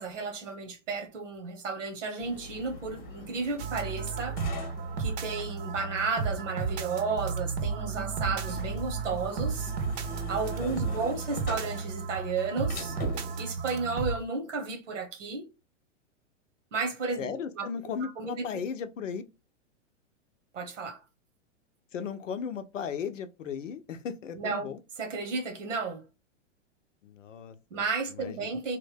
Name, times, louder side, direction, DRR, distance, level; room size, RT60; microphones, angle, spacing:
voice 1, 0.0-4.4 5.0-9.7 10.3-13.0 13.4-15.5 16.7-17.7 18.0-18.6 20.5-21.0 24.4-26.0 27.7-28.8, right 4 dB, 80° right, 1.2 m, -33 dB
sound 1, 2.2-13.4, left 2 dB, 25° left, 0.9 m, -44 dB
sound 2, 3.6-14.2, right 5 dB, 45° right, 0.7 m, -33 dB
voice 2, 10.6-11.1 17.2-19.2 21.9-24.8 27.0-27.6 28.2-28.5, left 6 dB, 90° left, 0.7 m, -36 dB
3.3 x 2.2 x 3.4 m
hypercardioid pair, 125°, 37 cm